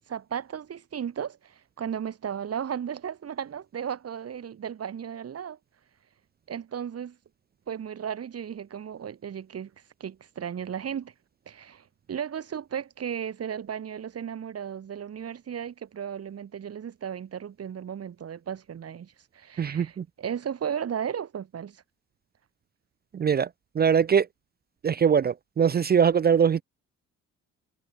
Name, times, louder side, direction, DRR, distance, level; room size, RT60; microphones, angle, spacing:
voice 1, 0.1-5.6 6.5-7.2 7.7-9.7 10.0-11.1 11.5-21.8, right 8 dB, 55° right, 3.2 m, -35 dB
voice 2, 19.6-20.0 23.1-23.5 23.8-24.3 24.8-26.6, right 7 dB, 35° right, 0.5 m, -22 dB
cardioid pair, 90°, 30 cm